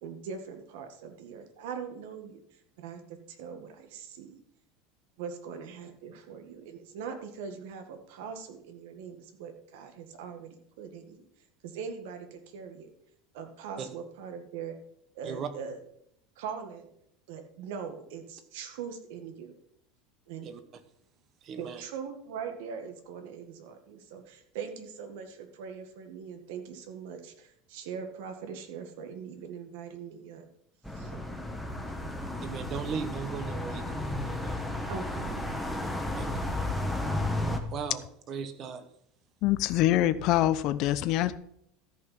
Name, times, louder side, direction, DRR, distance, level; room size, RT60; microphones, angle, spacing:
voice 1, 0.0-2.4 2.8-4.4 5.2-11.2 11.6-12.9 13.3-14.8 15.2-15.8 16.4-16.9 17.3-19.6 20.3-20.5 21.6-30.5 31.0-31.1 34.9-35.3, right 6 dB, 75° right, 6 dB, 1.9 m, -41 dB
voice 2, 20.4-20.8 21.4-21.8 32.4-34.6 36.2-36.4 37.7-38.0 38.3-38.8, right 6 dB, 35° right, 9 dB, 1.2 m, -37 dB
sound 1, 30.8-37.6, left 1 dB, ahead, 1.3 m, -33 dB
voice 3, 39.4-41.4, left 14 dB, 50° left, 14 dB, 0.7 m, -25 dB
13.5 x 5.7 x 6.0 m, 0.70 s
supercardioid pair, 150°, 0 cm